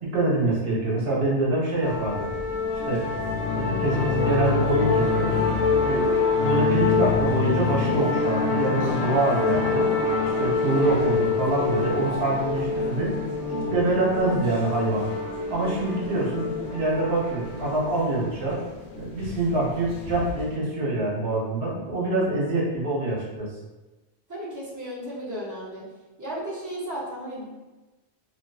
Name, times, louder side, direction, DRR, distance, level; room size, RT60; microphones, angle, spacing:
voice 1, 0.0-2.3 2.9-3.1 3.5-5.5 5.8-9.9 10.2-13.1 13.5-15.1 15.5-18.6 19.0-23.5, right 2 dB, 70° right, -4 dB, 0.9 m, -25 dB
sound 1, 1.8-20.6, left 4 dB, 85° left, 0.9 m, -26 dB
voice 2, 24.3-25.8 26.2-27.4, right 1 dB, 25° right, -7 dB, 0.4 m, -34 dB
2.4 x 2.3 x 2.3 m, 1.1 s
omnidirectional pair, 1.1 m